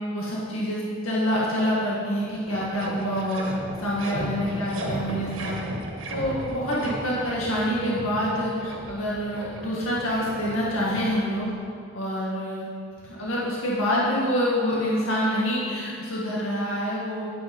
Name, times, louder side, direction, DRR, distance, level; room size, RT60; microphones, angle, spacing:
voice 1, 0.1-3.5 3.8-5.6 6.1-11.5 11.9-12.7 13.2-17.3, equal, 85° left, -6 dB, 2.0 m, -26 dB
sound 1, 2.1-11.6, right 1 dB, 65° right, 1.6 m, -36 dB
10.5 x 9.5 x 5.4 m, 2.5 s
head